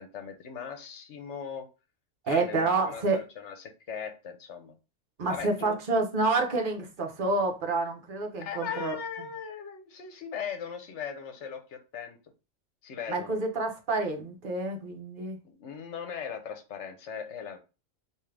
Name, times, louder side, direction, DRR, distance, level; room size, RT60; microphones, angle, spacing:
voice 1, 0.0-1.7 2.3-4.8 5.3-5.8 8.4-12.2 12.8-13.4 15.4-17.6, left 7 dB, 70° left, 1.0 m, -39 dB
voice 2, 2.2-3.2 5.2-8.9 13.1-15.4, right 3 dB, 45° right, 0.9 m, -28 dB
3.6 x 2.7 x 3.2 m
omnidirectional pair, 1.3 m